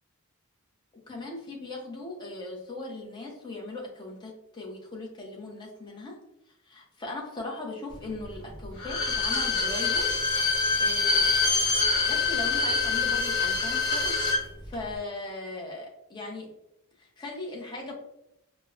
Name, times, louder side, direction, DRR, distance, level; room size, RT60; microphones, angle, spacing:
voice 1, 1.1-6.2 6.7-10.1 10.3-11.3 12.0-14.2 14.6-16.5 17.0-17.9, left 2 dB, 20° left, -2 dB, 0.7 m, -39 dB
Bowed string instrument, 8.8-14.4 14.7-14.8, left 4 dB, 50° left, 0.9 m, -25 dB
4.5 x 2.1 x 2.4 m, 0.83 s
head